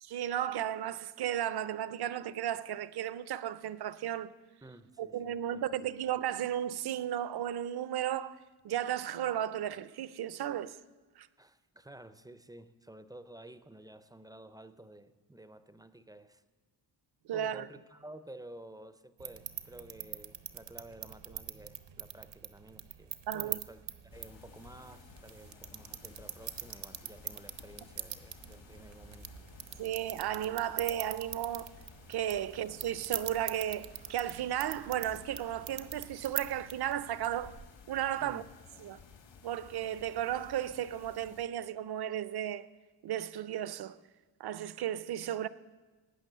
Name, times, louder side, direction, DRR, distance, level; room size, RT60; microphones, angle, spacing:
voice 1, 0.0-4.3 5.0-8.4 8.6-10.8 11.2-11.3 17.3-17.7 23.3-23.6 29.8-31.7 32.1-37.5 37.9-38.4 38.8-39.0 39.4-42.7 43.0-44.0 44.4-45.5, right 11 dB, 60° right, 0.6 m, -34 dB
voice 2, 4.6-5.7 11.4-16.4 17.3-23.8 24.0-29.4 38.2-38.5, right 1 dB, 10° right, 0.4 m, -52 dB
sound 1, 19.2-37.7, right 10 dB, 80° right, 1.0 m, -44 dB
sound 2, 24.1-41.4, left 6 dB, 80° left, 1.9 m, -56 dB
18.0 x 9.1 x 6.7 m
wide cardioid pair, 175°, 43 cm